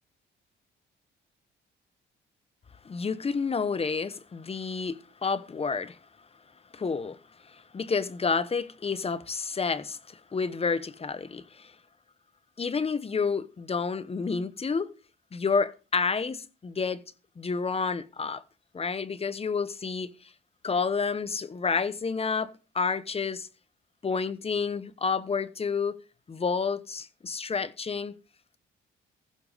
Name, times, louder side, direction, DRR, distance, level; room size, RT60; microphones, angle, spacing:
voice 1, 2.8-6.0 6.7-7.2 7.4-11.7 12.6-14.9 15.3-17.0 17.4-18.4 18.7-20.3 20.6-23.5 24.0-26.0 26.3-28.1, left 5 dB, 30° left, 1.1 m, -30 dB
15.0 x 7.3 x 5.2 m
cardioid pair, 90°, 20 cm